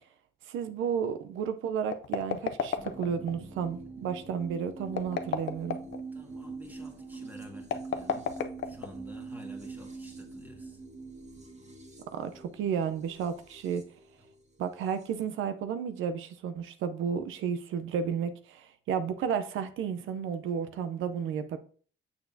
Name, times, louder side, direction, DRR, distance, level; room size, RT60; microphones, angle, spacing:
voice 1, 0.5-5.8 12.1-13.8 14.6-21.6, right 7 dB, 80° right, 0.6 m, -32 dB
sound 1, 1.8-3.3 4.9-6.0 7.6-9.2, left 8 dB, 70° left, 0.7 m, -32 dB
sound 2, 2.8-15.2, right 3 dB, 35° right, 1.8 m, -44 dB
voice 2, 6.1-8.3 8.6-10.8, equal, 10° right, 1.8 m, -50 dB
6.9 x 6.7 x 2.7 m
cardioid pair, 90°, 20 cm